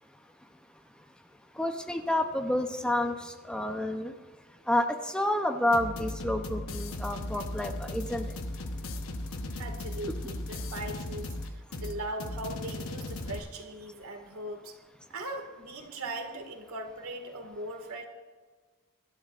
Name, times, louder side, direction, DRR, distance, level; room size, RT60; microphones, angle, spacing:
voice 1, 1.6-3.1 3.5-4.1 4.7-4.9 5.1-8.2, left 1 dB, 5° left, 5 dB, 0.6 m, -29 dB
sound 1, 5.7-13.4, left 1 dB, 75° left, 1.0 m, -37 dB
voice 2, 9.6-14.8 15.1-18.0, right 1 dB, 85° right, 4 dB, 2.0 m, -39 dB
24.0 x 12.5 x 2.5 m, 1.4 s
head